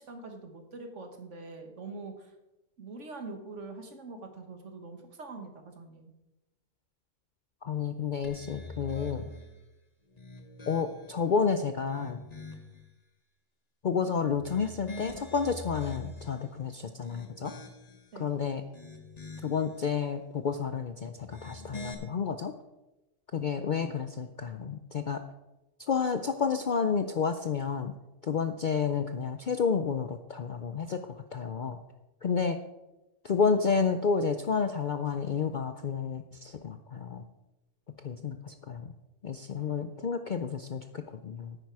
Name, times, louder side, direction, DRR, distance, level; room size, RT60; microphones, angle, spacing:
voice 1, 0.0-2.3 2.8-6.1 18.1-18.3, right 3 dB, 65° right, 5 dB, 1.7 m, -44 dB
voice 2, 7.6-9.3 10.7-12.2 13.8-17.5 18.2-18.6 19.4-22.5 23.3-25.2 25.9-27.9 28.2-31.0 31.3-31.8 32.2-32.6 33.2-37.2 38.0-38.9 39.2-41.6, left 5 dB, 55° left, 8 dB, 0.5 m, -30 dB
sound 1, 8.2-9.5 10.1-11.2 11.7-12.8 14.3-16.4 16.9-18.1 18.6-19.7 21.2-21.9, left 3 dB, 30° left, 1.3 m, -44 dB
10.0 x 9.0 x 4.7 m, 0.99 s
omnidirectional pair, 1.4 m